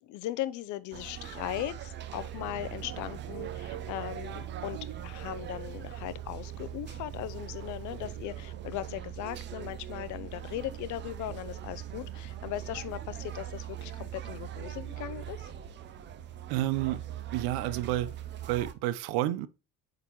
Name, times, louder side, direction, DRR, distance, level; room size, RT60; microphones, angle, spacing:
voice 1, 0.0-15.5, left 14 dB, 50° left, 0.5 m, -38 dB
sound 1, 0.9-18.7, right 11 dB, 30° right, 0.4 m, -41 dB
Telephone, 2.1-8.2, right 8 dB, 55° right, 1.0 m, -48 dB
voice 2, 16.5-17.0 17.3-18.1 18.5-19.5, right 14 dB, 85° right, 0.6 m, -30 dB
8.7 x 3.8 x 2.9 m
cardioid pair, 170°, 38 cm